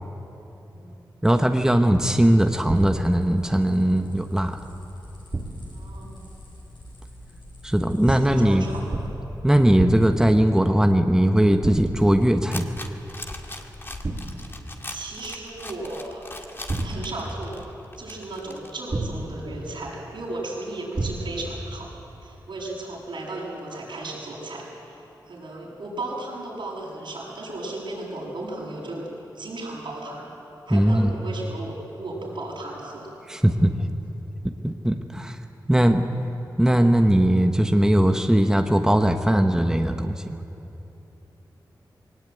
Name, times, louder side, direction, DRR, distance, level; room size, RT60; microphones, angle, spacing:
voice 1, 0.7-1.1 5.7-6.2 8.1-9.1 14.3-14.5 14.9-16.3 16.8-17.7 18.0-21.9 22.2-29.1 29.3-30.3 30.7-33.1, right 2 dB, 85° right, -4 dB, 7.7 m, -35 dB
voice 2, 1.2-4.6 7.6-8.7 9.4-12.7 30.7-31.1 33.3-33.7 34.6-35.4 35.7-36.1 36.6-40.2, right 1 dB, 5° right, 5 dB, 1.1 m, -19 dB
sound 1, 1.9-9.1, equal, 75° left, 7.5 m, -47 dB
sound 2, 2.7-3.2 5.3-5.8 8.0-8.5 8.9-9.4 9.8-10.3 11.6-12.2 14.0-14.5 16.7-17.3 18.9-19.5 20.9-21.5, right 2 dB, 45° right, 2.6 m, -30 dB
sound 3, 12.0-18.7, left 2 dB, 30° left, 1.9 m, -40 dB
21.0 x 18.5 x 9.2 m, 3.0 s
wide cardioid pair, 70°, 8 cm